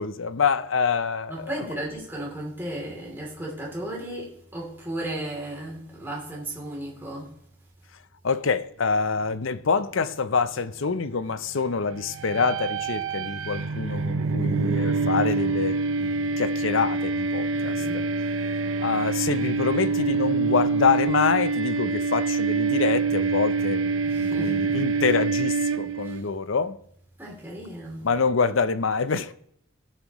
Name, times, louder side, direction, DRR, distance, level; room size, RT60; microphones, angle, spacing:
voice 1, 0.0-1.5 8.2-18.0 18.8-26.8 28.0-29.3, left 5 dB, 65° left, 0.6 m, -26 dB
voice 2, 1.3-7.3 17.5-18.0 24.0-24.8 26.0-26.2 27.2-28.1, right 1 dB, 10° right, 3.1 m, -35 dB
sound 1, 12.2-26.2, right 4 dB, 65° right, 0.6 m, -26 dB
17.5 x 7.4 x 3.1 m
head